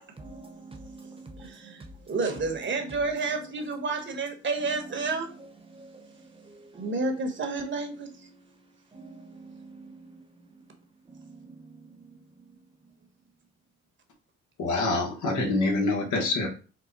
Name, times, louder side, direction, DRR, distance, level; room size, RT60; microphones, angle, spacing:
voice 1, 0.3-1.5 5.8-5.9 6.7-6.9 8.9-9.1 9.3-9.9, right 3 dB, 20° right, 3 dB, 1.1 m, -45 dB
voice 2, 1.4-5.3 6.8-8.3, right 3 dB, 40° right, 3 dB, 1.2 m, -30 dB
voice 3, 14.6-16.5, left 2 dB, 75° left, 1 dB, 1.4 m, -26 dB
4.7 x 2.2 x 4.0 m, 0.36 s
cardioid pair, 90°, 30 cm